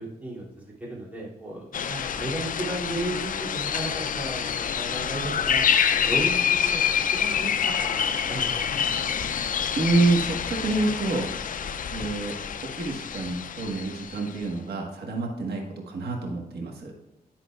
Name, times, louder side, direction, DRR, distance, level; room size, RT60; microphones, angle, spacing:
voice 1, 0.0-7.5 7.8-8.8, right 1 dB, 10° right, -5 dB, 2.7 m, -35 dB
sound 1, 1.7-14.3, left 8 dB, 55° left, 0.4 m, -27 dB
voice 2, 9.7-11.3 11.9-12.4 12.7-16.9, right 3 dB, 90° right, 0 dB, 1.4 m, -27 dB
11.0 x 5.8 x 2.4 m, 1.0 s
wide cardioid pair, 115°, 16 cm